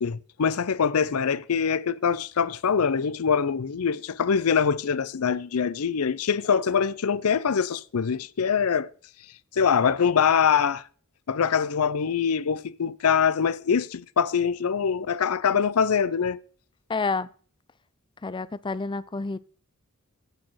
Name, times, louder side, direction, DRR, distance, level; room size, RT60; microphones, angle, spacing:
voice 1, 0.0-8.9 9.6-10.8 11.3-16.4, left 6 dB, 90° left, 0.6 m, -24 dB
voice 2, 16.9-17.3 18.2-19.4, left 4 dB, 20° left, 0.4 m, -29 dB
9.0 x 6.1 x 6.2 m
head